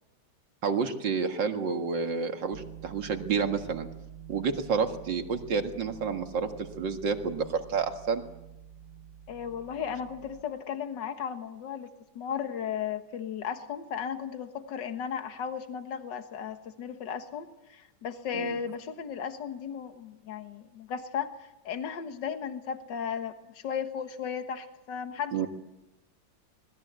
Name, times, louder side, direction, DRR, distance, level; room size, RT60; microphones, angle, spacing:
voice 1, 0.6-3.9 4.3-6.5 6.8-8.2 18.3-18.6 25.3-25.5, right 5 dB, 70° right, 6 dB, 2.5 m, -29 dB
sound 1, 2.5-10.4, right 9 dB, 55° right, 1.4 m, -47 dB
voice 2, 9.3-25.5, left 7 dB, 70° left, 8 dB, 2.1 m, -35 dB
25.5 x 20.0 x 8.1 m, 0.94 s
omnidirectional pair, 2.0 m